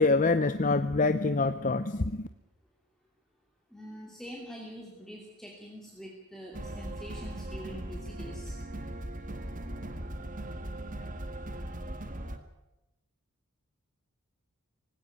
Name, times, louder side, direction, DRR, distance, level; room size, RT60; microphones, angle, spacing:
voice 1, 0.0-2.2, left 3 dB, 35° left, 11 dB, 0.7 m, -25 dB
voice 2, 3.7-8.6, equal, ahead, -2 dB, 2.8 m, -45 dB
sound 1, 6.5-12.4, right 1 dB, 40° right, 1.9 m, -39 dB
19.0 x 16.5 x 9.5 m, 0.95 s
head